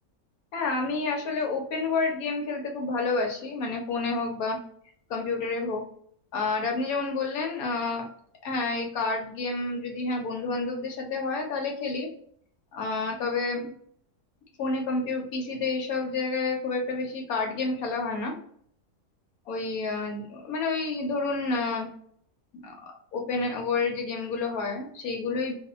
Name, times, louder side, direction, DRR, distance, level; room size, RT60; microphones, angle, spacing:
voice 1, 0.5-4.6 5.1-5.8 6.3-8.1 8.4-12.1 12.7-13.7 14.6-18.4 19.5-21.9 22.6-25.5, left 3 dB, 75° left, 2 dB, 1.2 m, -29 dB
2.6 x 2.4 x 2.4 m, 0.63 s
omnidirectional pair, 1.6 m